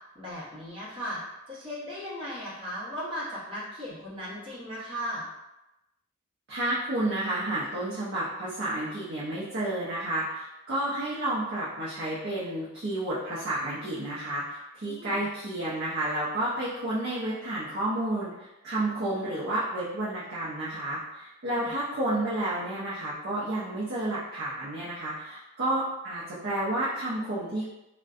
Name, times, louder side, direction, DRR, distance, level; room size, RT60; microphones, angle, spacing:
voice 1, 0.1-1.2 1.5-5.3 14.9-15.2 21.5-21.6, equal, 25° right, -9 dB, 0.8 m, -37 dB
voice 2, 6.5-27.7, right 1 dB, 50° right, -8 dB, 0.5 m, -31 dB
2.5 x 2.1 x 2.4 m, 0.94 s
head